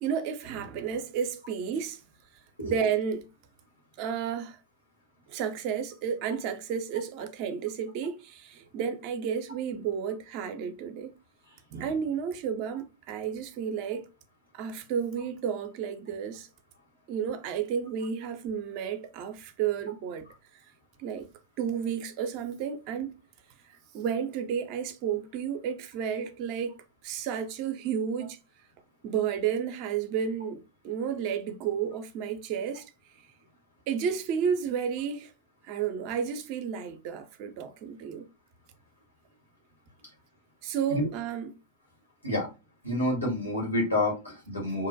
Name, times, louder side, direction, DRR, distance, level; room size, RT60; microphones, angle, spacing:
voice 1, 0.0-2.0 2.6-3.3 4.0-4.6 5.3-11.1 11.7-14.1 14.5-16.5 17.1-20.3 21.0-21.3 21.6-23.1 23.9-26.8 27.0-28.4 29.0-32.9 33.9-35.3 35.6-38.3 40.6-41.5, right 7 dB, 45° right, 0.4 m, -32 dB
voice 2, 42.8-44.9, left 1 dB, 85° left, 1.3 m, -28 dB
2.6 x 2.1 x 2.6 m
figure-of-eight pair, 90°, 0 cm